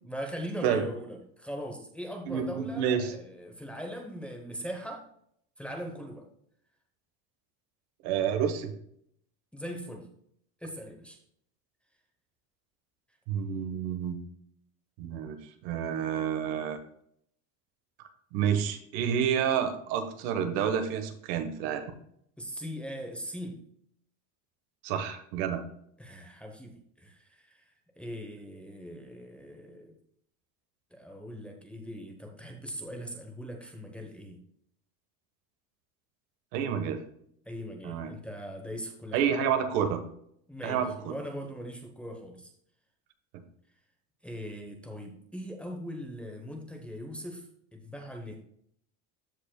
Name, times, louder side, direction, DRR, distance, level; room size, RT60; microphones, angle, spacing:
voice 1, 0.0-5.1 5.6-6.2 9.5-10.1 10.6-11.2 22.4-23.6 26.0-29.9 30.9-34.4 37.4-39.3 40.5-42.5 44.2-47.5 47.7-48.4, equal, 5° left, 1 dB, 0.8 m, -40 dB
voice 2, 2.3-3.1 8.0-8.7 13.3-14.2 15.0-16.8 18.3-21.9 24.8-25.6 36.5-37.0 37.8-38.1 39.1-40.0 40.6-41.1, right 8 dB, 70° right, 7 dB, 1.3 m, -29 dB
13.5 x 5.1 x 2.2 m, 0.68 s
cardioid pair, 170°, 38 cm